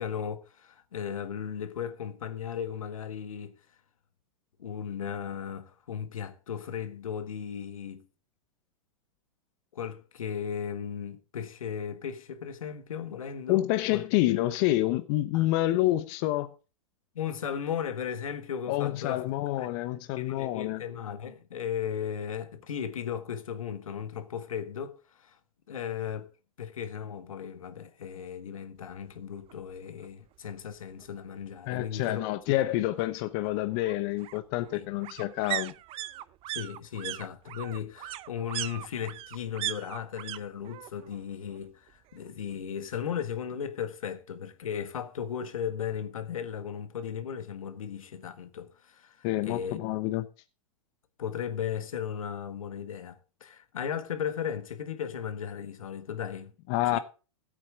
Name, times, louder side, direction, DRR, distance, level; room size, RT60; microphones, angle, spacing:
voice 1, 0.0-3.5 4.6-8.0 9.7-14.0 15.3-15.4 17.1-19.2 19.6-19.7 20.2-25.4 25.7-26.3 26.6-32.2 34.7-34.9 36.5-49.8 51.2-56.5 56.9-57.0, left 8 dB, 85° left, 1.6 m, -36 dB
voice 2, 13.5-16.5 18.7-20.8 31.7-35.7 49.2-50.3 56.7-57.0, left 16 dB, 50° left, 0.9 m, -28 dB
sound 1, 29.5-29.6 30.0-30.1 30.3-31.3 32.6-40.4 40.6-41.2 41.5-42.5 42.8-42.9, right 15 dB, 35° right, 0.7 m, -39 dB
15.5 x 8.5 x 3.7 m
hypercardioid pair, 115°, 17 cm